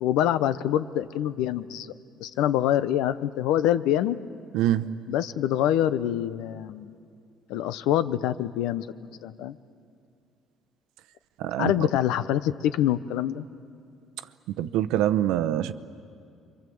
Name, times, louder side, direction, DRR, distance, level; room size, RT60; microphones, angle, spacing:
voice 1, 0.0-1.9 2.2-4.2 5.1-6.9 7.5-8.9 9.2-9.6 11.6-13.5, left 11 dB, 85° left, 14 dB, 0.8 m, -25 dB
voice 2, 4.5-4.8 11.4-11.9 14.6-15.7, right 12 dB, 85° right, 12 dB, 0.8 m, -24 dB
29.0 x 24.0 x 7.9 m, 2.4 s
cardioid pair, 145°, 0 cm